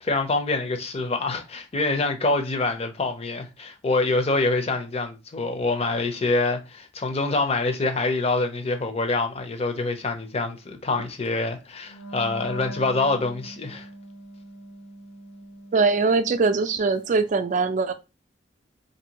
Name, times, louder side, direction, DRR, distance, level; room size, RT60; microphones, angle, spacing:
voice 1, 0.0-13.9, left 3 dB, 35° left, 0.6 m, -25 dB
Wind instrument woodwind instrument, 11.8-16.9, equal, 70° left, 0.7 m, -41 dB
voice 2, 15.7-17.9, right 4 dB, 45° right, 0.4 m, -22 dB
4.0 x 2.7 x 2.9 m
head